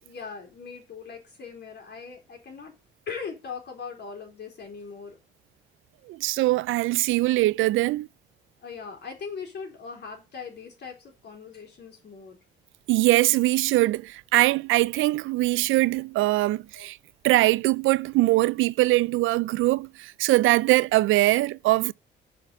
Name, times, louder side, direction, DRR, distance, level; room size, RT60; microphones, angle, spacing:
voice 1, 0.0-2.7 3.1-5.2 8.6-12.4 16.7-16.9, left 5 dB, 60° left, 4.1 m, -40 dB
voice 2, 6.1-8.1 12.9-17.0 17.2-21.9, right 18 dB, 85° right, 0.4 m, -22 dB
6.9 x 5.9 x 6.9 m
cardioid pair, 90°, 20 cm